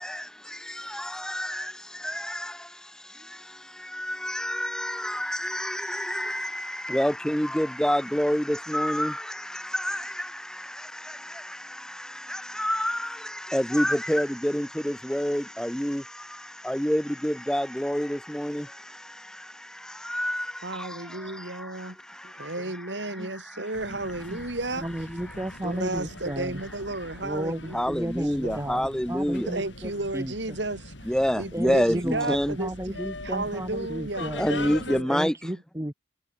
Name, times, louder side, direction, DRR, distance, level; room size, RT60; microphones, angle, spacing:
voice 1, 0.0-23.7 24.3-24.5 25.3-25.6 27.7-29.5 31.1-32.6 34.4-35.5, equal, 5° left, 1.0 m, -29 dB
voice 2, 20.6-22.0 22.2-24.9 25.6-27.9 28.4-28.7 29.5-35.2, right 2 dB, 70° right, 3.8 m, -33 dB
sound 1, 23.7-35.0, left 2 dB, 80° left, 6.3 m, -42 dB
voice 3, 24.8-26.6 27.2-30.3 31.5-34.5 35.1-35.9, right 1 dB, 15° right, 1.4 m, -33 dB
head